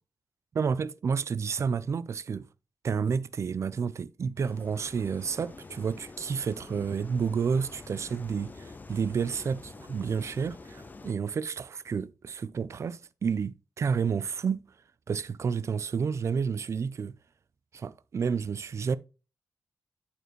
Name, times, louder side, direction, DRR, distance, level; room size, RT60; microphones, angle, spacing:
voice 1, 0.5-2.5 2.8-14.7 15.1-17.1 17.7-19.0, right 6 dB, 45° right, 0.4 m, -30 dB
sound 1, 4.4-11.1, left 3 dB, 25° left, 0.5 m, -47 dB
9.2 x 4.3 x 3.0 m
wide cardioid pair, 155°, 7 cm